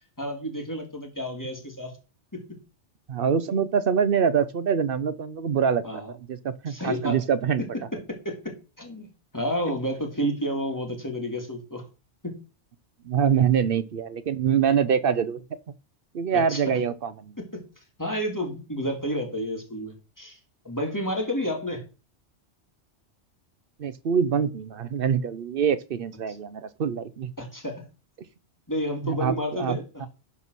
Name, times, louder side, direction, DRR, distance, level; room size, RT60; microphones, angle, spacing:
voice 1, 0.2-1.9 2.3-2.4 5.8-6.1 6.7-7.2 7.6-7.7 7.9-9.1 9.3-11.8 12.2-12.4 16.3-16.8 17.5-17.6 18.0-20.4 20.6-21.8 27.4-27.8 28.7-30.0, equal, 15° left, 2.3 m, -30 dB
voice 2, 3.1-5.8 6.1-7.6 13.0-15.4 16.1-17.4 23.8-27.3 29.0-30.1, right 7 dB, 55° right, 0.9 m, -25 dB
11.5 x 4.1 x 6.2 m
omnidirectional pair, 1.2 m